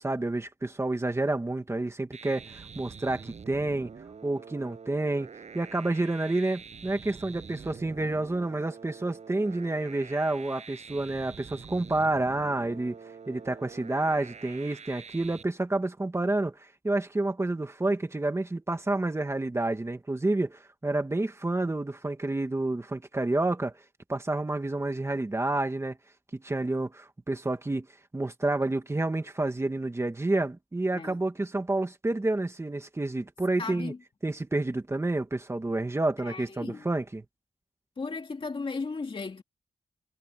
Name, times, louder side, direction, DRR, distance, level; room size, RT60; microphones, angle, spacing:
voice 1, 0.0-3.9 4.2-5.3 5.5-13.0 13.3-23.7 24.1-26.0 26.3-27.9 28.1-33.9 34.2-37.2, right 2 dB, 20° right, 1.9 m, -29 dB
sound 1, 2.1-15.4, right 5 dB, 60° right, 7.4 m, -46 dB
voice 2, 33.6-34.0 36.2-36.9 38.0-39.4, left 4 dB, 45° left, 2.5 m, -36 dB
wide cardioid pair, 130°, 13 cm